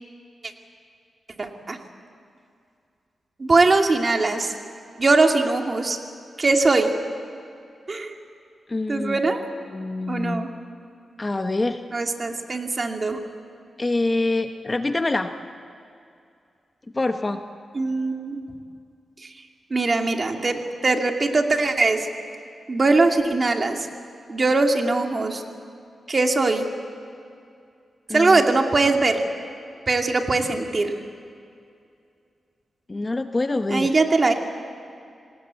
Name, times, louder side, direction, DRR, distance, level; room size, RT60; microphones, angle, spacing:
voice 1, 1.4-1.8 3.4-4.5 5.0-6.0 6.4-6.9 7.9-8.1 8.9-9.4 10.1-10.5 11.9-13.2 17.7-18.4 19.7-22.1 22.7-23.9 24.3-25.4 26.1-26.7 28.1-29.2 29.9-30.9 33.7-34.3, right 3 dB, 40° right, 3 dB, 2.4 m, -21 dB
voice 2, 8.7-9.2 9.7-10.5 11.2-11.8 13.8-15.3 16.9-17.4 28.1-28.4 32.9-33.9, left 2 dB, 30° left, 7 dB, 1.1 m, -25 dB
27.0 x 19.0 x 8.3 m, 2.4 s
cardioid pair, 75°, 0 cm